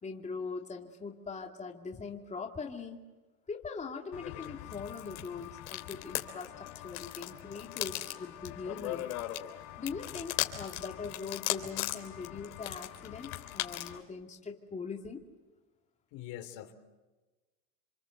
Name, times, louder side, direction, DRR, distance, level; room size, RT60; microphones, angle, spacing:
voice 1, 0.0-3.0 3.5-9.1 9.8-15.2, left 5 dB, 15° left, 1 dB, 2.6 m, -41 dB
sound 1, 4.1-14.0, left 15 dB, 75° left, 3.5 m, -39 dB
voice 2, 16.1-16.7, left 12 dB, 55° left, 6 dB, 3.3 m, -43 dB
28.0 x 25.0 x 8.0 m, 1.2 s
supercardioid pair, 125°, 42 cm